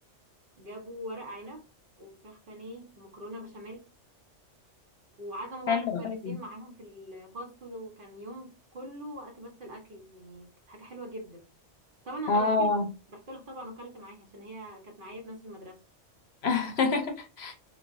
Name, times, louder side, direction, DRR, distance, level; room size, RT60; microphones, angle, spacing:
voice 1, 0.6-1.6 2.0-3.9 5.2-11.4 12.0-12.7 13.1-15.8, right 1 dB, 50° right, 1.0 m, -42 dB
voice 2, 5.7-6.0 6.2-6.3 12.3-12.8 16.4-17.5, left 4 dB, 65° left, 0.9 m, -26 dB
3.2 x 3.1 x 2.6 m
omnidirectional pair, 1.3 m